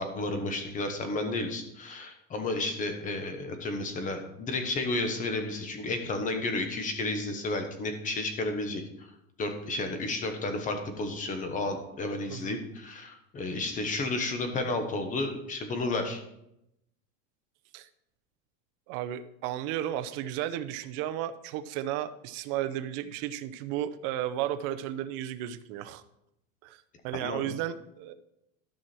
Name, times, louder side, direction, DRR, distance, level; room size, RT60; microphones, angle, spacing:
voice 1, 0.0-9.1 9.4-16.2 27.1-27.4, left 2 dB, 20° left, 6 dB, 1.2 m, -32 dB
voice 2, 18.9-26.0 26.6-28.1, right 12 dB, 40° right, 10 dB, 0.6 m, -34 dB
13.0 x 6.1 x 4.4 m, 0.82 s
supercardioid pair, 160°, 39 cm